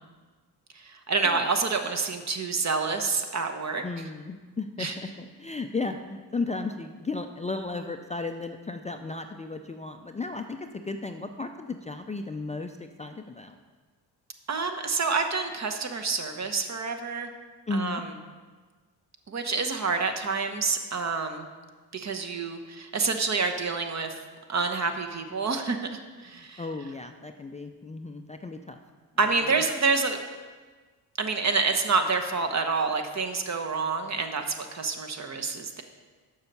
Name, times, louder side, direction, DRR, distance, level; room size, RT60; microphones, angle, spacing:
voice 1, 0.7-3.8 4.8-5.0 14.5-17.3 17.7-18.0 19.3-21.5 21.9-24.1 24.5-25.8 26.2-26.6 29.2-30.2 31.2-35.8, right 4 dB, 45° right, 6 dB, 1.0 m, -28 dB
voice 2, 3.8-13.6 17.7-18.0 26.3-28.8 29.4-29.5, left 3 dB, 20° left, 6 dB, 0.4 m, -35 dB
7.0 x 5.6 x 6.7 m, 1.4 s
cardioid pair, 75°, 39 cm